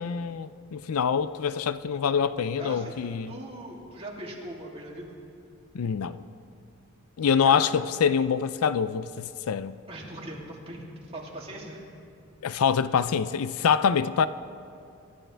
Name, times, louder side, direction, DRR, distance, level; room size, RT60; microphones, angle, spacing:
voice 1, 0.0-3.3 5.7-6.2 7.2-9.8 12.4-14.3, left 7 dB, 70° left, 0.4 m, -25 dB
voice 2, 2.6-3.0 3.3-5.1 7.4-7.6 9.9-11.8, right 1 dB, 30° right, 2.8 m, -40 dB
26.5 x 13.0 x 3.4 m
head